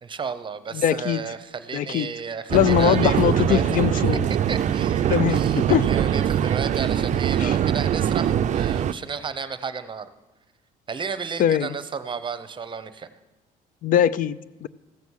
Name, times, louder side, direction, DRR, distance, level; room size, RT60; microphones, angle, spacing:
voice 1, 0.0-3.6 3.9-4.0 4.5-10.1 10.9-13.1, right 5 dB, 30° right, 12 dB, 0.8 m, -33 dB
voice 2, 0.7-1.2 1.7-2.1 2.5-4.2 5.1-5.4 5.7-5.8 7.4-7.6 11.4-11.7 13.8-14.7, left 11 dB, 55° left, 19 dB, 0.5 m, -21 dB
sound 1, 2.5-8.9, right 10 dB, 45° right, 0.4 m, -22 dB
15.0 x 7.0 x 6.3 m, 1.1 s
cardioid pair, 110°, 17 cm